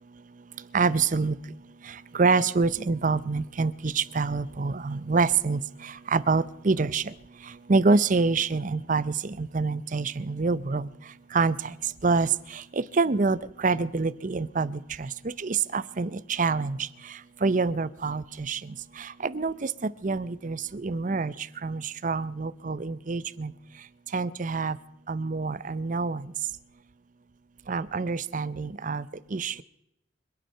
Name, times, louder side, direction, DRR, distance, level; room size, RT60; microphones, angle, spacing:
voice 1, 0.7-1.4 1.9-7.0 7.7-10.9 11.3-11.7 12.0-16.9 17.4-19.7 20.0-21.3 21.6-23.5 24.1-24.8 25.1-26.3 27.7-29.1 29.3-29.6, right 4 dB, 40° right, 16 dB, 0.6 m, -26 dB
25.5 x 9.2 x 5.6 m, 0.85 s
head